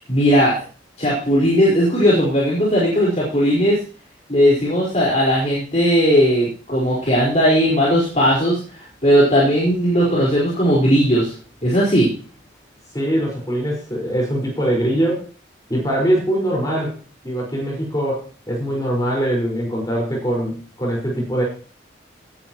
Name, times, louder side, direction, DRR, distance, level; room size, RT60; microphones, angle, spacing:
voice 1, 0.1-0.6 1.0-3.8 4.3-11.3 11.6-12.1, equal, 40° left, -6 dB, 4.7 m, -17 dB
voice 2, 12.9-15.3 15.7-16.9 17.2-21.4, right 1 dB, 20° left, -2 dB, 5.0 m, -22 dB
18.0 x 10.0 x 3.1 m, 0.39 s
head